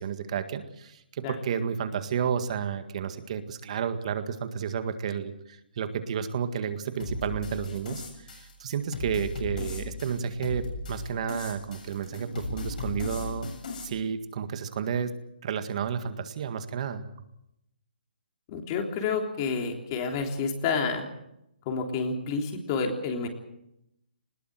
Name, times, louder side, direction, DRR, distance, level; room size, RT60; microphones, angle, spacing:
voice 1, 0.0-13.5 13.8-15.1 15.4-17.1, right 7 dB, 40° right, 9 dB, 1.8 m, -31 dB
sound 1, 7.0-13.8, left 3 dB, 55° left, 7.3 m, -37 dB
voice 2, 18.5-21.1 21.7-23.3, left 5 dB, 25° left, 3 dB, 3.4 m, -29 dB
20.5 x 18.5 x 7.9 m, 0.81 s
hypercardioid pair, 160°, 5 cm